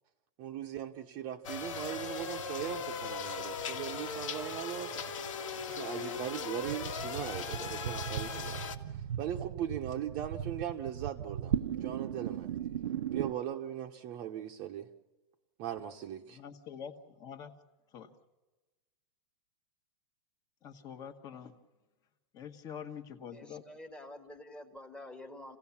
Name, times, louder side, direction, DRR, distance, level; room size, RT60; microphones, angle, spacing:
voice 1, 0.4-4.9 5.7-8.6 8.9-12.5 13.1-14.9 15.6-16.4, right 10 dB, 30° right, 0.9 m, -39 dB
sound 1, 1.4-8.8, left 5 dB, 90° left, 2.0 m, -39 dB
sound 2, 6.6-13.3, right 10 dB, 85° right, 0.8 m, -37 dB
voice 2, 16.3-16.9 17.2-17.5 17.9-18.1 20.6-21.5 22.3-23.6, left 8 dB, 25° left, 1.4 m, -45 dB
voice 3, 23.3-25.6, left 1 dB, 5° left, 1.5 m, -48 dB
28.0 x 17.0 x 7.2 m
supercardioid pair, 165°, 16 cm